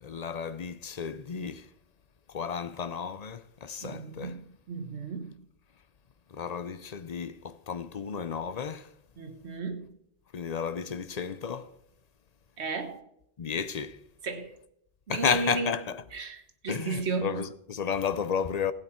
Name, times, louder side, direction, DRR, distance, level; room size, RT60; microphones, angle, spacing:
voice 1, 0.0-1.7 2.3-4.3 6.3-8.9 10.3-11.7 13.4-14.0 15.1-16.0 16.7-18.7, left 7 dB, 45° left, 0.6 m, -32 dB
voice 2, 3.8-5.3 9.2-9.9 12.6-13.0 14.2-14.6 15.1-15.7 16.1-17.5, right 4 dB, 80° right, 1.6 m, -34 dB
16.0 x 8.7 x 4.4 m
omnidirectional pair, 1.1 m